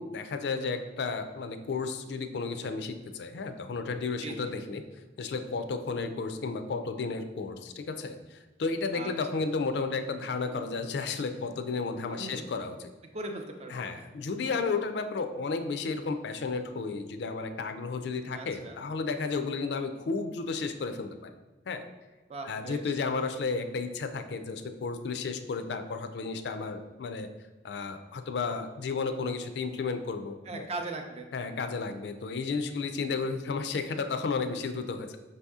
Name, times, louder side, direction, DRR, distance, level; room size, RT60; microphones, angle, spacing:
voice 1, 0.0-4.8 5.2-12.8 13.7-21.3 21.7-21.8 22.5-27.3 27.6-30.7 31.3-35.2, left 4 dB, 70° left, 8 dB, 0.4 m, -33 dB
voice 2, 4.2-4.6 8.9-9.4 12.1-12.5 13.1-14.1 18.3-18.8 22.3-23.0 30.4-31.3, right 2 dB, 35° right, 4 dB, 0.5 m, -39 dB
5.4 x 2.7 x 3.5 m, 1.2 s
head